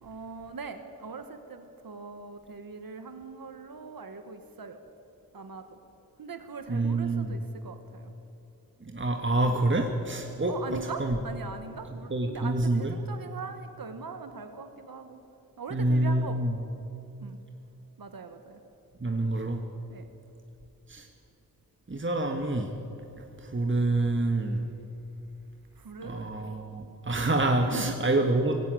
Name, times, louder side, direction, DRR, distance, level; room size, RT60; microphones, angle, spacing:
voice 1, 0.0-4.8 5.3-5.8 6.2-8.1 10.2-15.2 15.6-16.4 17.2-17.4 18.0-18.6 19.9-20.1 25.8-26.2 27.6-28.0, right 4 dB, 75° right, 8 dB, 1.5 m, -41 dB
voice 2, 6.7-7.4 8.9-11.2 12.1-12.9 15.7-16.5 19.0-19.6 20.9-21.1 21.9-22.7 23.5-24.6 26.0-28.6, right 2 dB, 35° right, 3 dB, 1.7 m, -27 dB
20.0 x 16.5 x 9.1 m, 2.9 s
cardioid pair, 55°, 36 cm